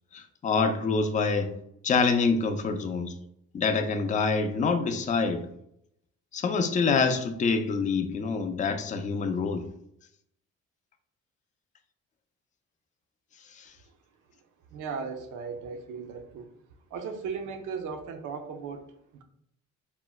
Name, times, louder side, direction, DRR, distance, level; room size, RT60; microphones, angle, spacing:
voice 1, 0.1-1.5 1.8-3.1 3.5-5.5 6.3-9.6, left 4 dB, 25° left, 0.3 m, -26 dB
voice 2, 14.7-16.5 16.9-18.9, right 5 dB, 80° right, 0.5 m, -36 dB
4.2 x 2.0 x 2.3 m
cardioid pair, 90°, 30 cm